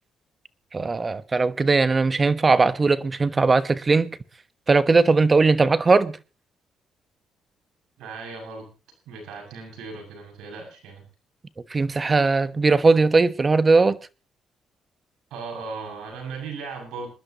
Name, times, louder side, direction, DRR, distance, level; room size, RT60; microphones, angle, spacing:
voice 1, 0.7-4.2 4.7-6.2 11.7-14.0, right 3 dB, 30° right, 1.2 m, -19 dB
voice 2, 8.0-8.7 9.1-11.0 15.3-17.1, right 4 dB, 85° right, 6.9 m, -37 dB
27.0 x 11.0 x 3.0 m
cardioid pair, 90°, 0 cm